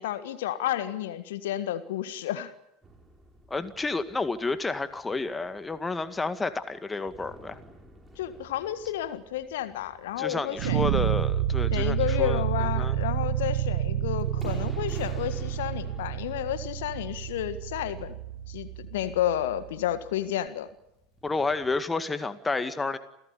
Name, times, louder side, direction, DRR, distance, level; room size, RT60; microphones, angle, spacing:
voice 1, 0.0-2.5 8.2-10.8 11.7-18.1 18.5-20.7, left 12 dB, 60° left, 11 dB, 1.6 m, -31 dB
sound 1, 2.8-21.8, right 2 dB, 10° right, 5.8 m, -52 dB
voice 2, 3.5-7.6 10.2-13.0 21.2-23.0, left 3 dB, 15° left, 11 dB, 2.0 m, -30 dB
sound 2, 10.6-19.7, right 11 dB, 60° right, 1.5 m, -29 dB
28.5 x 17.0 x 9.9 m, 0.80 s
figure-of-eight pair, 75°, 0 cm